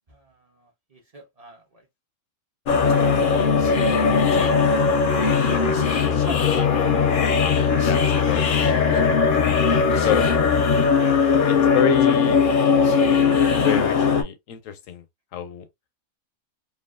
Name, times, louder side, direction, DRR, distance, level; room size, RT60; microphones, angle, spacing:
voice 1, 0.6-1.6 5.8-6.5 9.3-9.7 10.0-10.1, right 1 dB, 40° right, 0.5 m, -42 dB
sound 1, 2.7-14.2, left 5 dB, 55° left, 0.6 m, -19 dB
voice 2, 7.4-8.6 8.8-9.6 10.0-10.3 11.5-12.5 13.6-15.0 15.3-15.6, left 9 dB, 70° left, 0.9 m, -29 dB
2.9 x 2.3 x 2.3 m
omnidirectional pair, 1.5 m